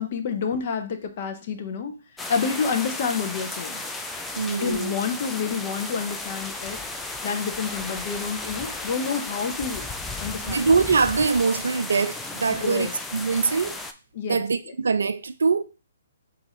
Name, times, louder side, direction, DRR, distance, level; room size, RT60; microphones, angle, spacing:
voice 1, 0.0-2.0 2.3-3.8 4.6-6.8 7.2-9.9 10.2-10.7 12.6-12.9 14.1-14.4, left 6 dB, 45° left, 0.7 m, -28 dB
sound 1, 2.2-13.9, left 2 dB, 5° left, 0.3 m, -34 dB
voice 2, 4.4-4.9 10.4-13.8 14.3-15.6, right 5 dB, 70° right, 0.4 m, -23 dB
4.0 x 2.5 x 4.3 m
figure-of-eight pair, 130°, 0 cm